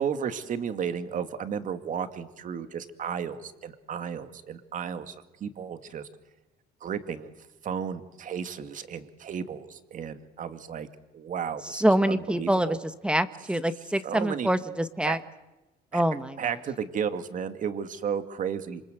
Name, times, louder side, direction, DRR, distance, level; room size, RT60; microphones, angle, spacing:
voice 1, 0.0-5.1 5.4-6.1 6.8-7.3 7.6-10.9 11.1-12.8 14.0-14.5 15.0-15.2 15.9-16.0 16.4-18.8, right 7 dB, 50° right, 9 dB, 2.2 m, -33 dB
voice 2, 11.6-12.8 13.0-15.2 15.9-16.4, right 1 dB, 5° right, 11 dB, 1.4 m, -25 dB
27.0 x 25.5 x 8.1 m, 1.1 s
cardioid pair, 110°, 17 cm